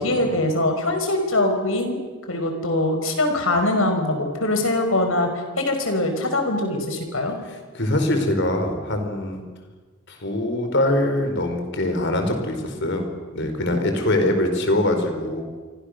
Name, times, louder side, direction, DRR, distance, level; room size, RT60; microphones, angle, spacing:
voice 1, 0.0-2.0 2.3-5.3 5.6-7.4, left 2 dB, 75° left, 5 dB, 5.3 m, -22 dB
voice 2, 7.4-9.4 10.1-15.4, left 1 dB, 60° left, 6 dB, 4.8 m, -23 dB
29.0 x 24.0 x 6.8 m, 1.4 s
head